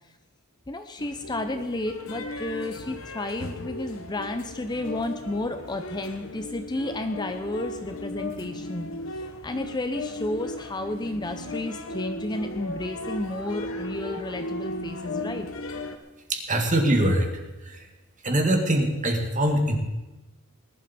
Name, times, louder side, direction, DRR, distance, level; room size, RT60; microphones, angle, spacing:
voice 1, 0.7-8.9 9.1-15.5, left 2 dB, 20° left, 7 dB, 0.7 m, -32 dB
sound 1, 1.0-16.0, left 1 dB, 70° left, 1.2 m, -36 dB
voice 2, 16.3-17.3 17.6-17.8 18.2-19.8, right 1 dB, 35° right, 3 dB, 2.0 m, -23 dB
20.0 x 11.5 x 4.3 m, 1.1 s
head